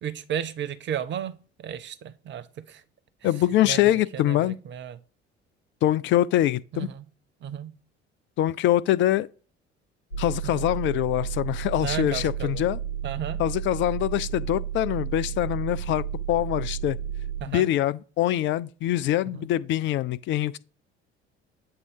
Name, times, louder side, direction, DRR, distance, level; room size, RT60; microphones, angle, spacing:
voice 1, 0.0-2.8 3.2-3.3 3.6-3.8 4.1-5.0 6.7-7.1 7.4-7.7 10.4-10.7 11.8-12.6 13.0-13.4 17.4-17.7 19.4-19.5, right 9 dB, 35° right, 0.6 m, -34 dB
voice 2, 3.2-4.6 5.8-6.9 8.4-9.3 10.2-12.8 13.4-17.0 17.5-20.6, left 13 dB, 35° left, 0.4 m, -24 dB
sound 1, 10.1-17.4, right 9 dB, 90° left, 0.7 m, -32 dB
7.9 x 2.8 x 4.5 m
figure-of-eight pair, 55°, 33 cm